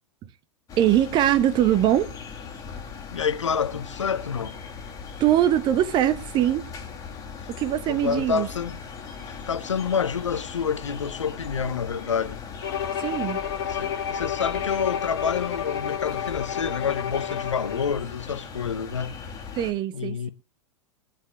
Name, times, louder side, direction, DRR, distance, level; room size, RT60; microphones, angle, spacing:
sound 1, 0.7-19.7, left 6 dB, 20° left, 2.1 m, -39 dB
voice 1, 0.8-2.1 5.2-6.7 7.5-8.5 13.0-13.4 19.6-20.3, right 12 dB, 30° right, 0.9 m, -22 dB
voice 2, 3.1-4.6 7.4-7.5 7.9-8.8 9.3-12.4 13.7-19.2 19.9-20.3, left 6 dB, 70° left, 0.9 m, -28 dB
Bowed string instrument, 12.6-18.0, left 8 dB, 55° left, 1.9 m, -30 dB
23.5 x 9.6 x 2.3 m
figure-of-eight pair, 95°, 16 cm